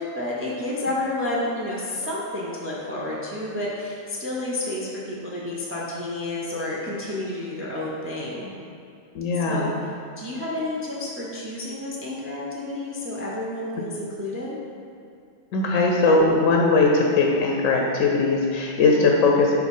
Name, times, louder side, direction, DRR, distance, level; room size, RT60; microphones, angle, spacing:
voice 1, 0.0-8.5 9.5-9.7 10.2-14.6, left 1 dB, 15° right, -4 dB, 0.4 m, -30 dB
voice 2, 9.1-9.7 15.5-19.6, left 3 dB, 80° left, 0 dB, 1.0 m, -19 dB
4.9 x 3.9 x 5.3 m, 2.5 s
omnidirectional pair, 1.3 m